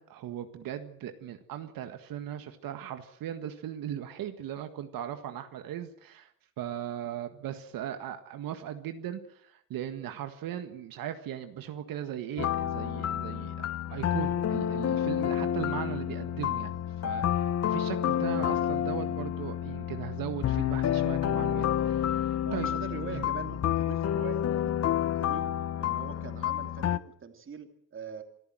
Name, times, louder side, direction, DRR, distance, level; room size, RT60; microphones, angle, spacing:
voice 1, 0.0-6.3 6.6-22.7 23.1-23.2, right 10 dB, 80° right, 8 dB, 1.8 m, -38 dB
sound 1, 12.4-27.0, left 10 dB, 45° left, 0.9 m, -29 dB
voice 2, 22.4-25.4 25.8-28.2, right 6 dB, 35° right, 6 dB, 3.0 m, -42 dB
26.5 x 14.0 x 7.7 m, 0.68 s
cardioid pair, 115°, 34 cm